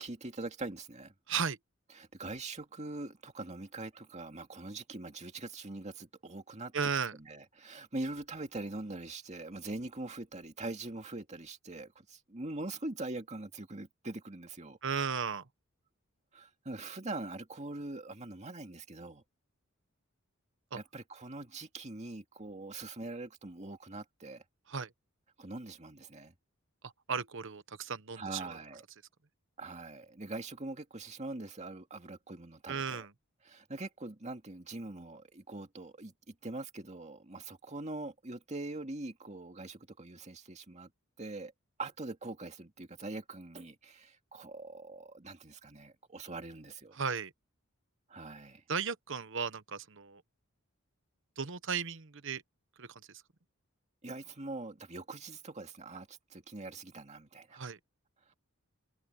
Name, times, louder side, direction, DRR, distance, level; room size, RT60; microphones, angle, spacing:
voice 1, 0.0-1.1 2.0-6.7 7.1-14.8 16.3-19.2 20.7-24.4 25.4-26.3 28.2-28.8 29.6-33.1 33.4-40.9 41.2-41.5 41.8-47.0 48.1-48.6 54.0-57.6, right 2 dB, 35° right, 2.2 m, -43 dB
voice 2, 1.3-1.6 6.7-7.1 14.8-15.5 20.7-20.8 24.7-24.9 26.8-28.6 32.7-33.1 46.9-47.3 48.7-50.2 51.4-52.4 52.8-53.2 57.5-57.8, right 6 dB, 65° right, 1.1 m, -35 dB
head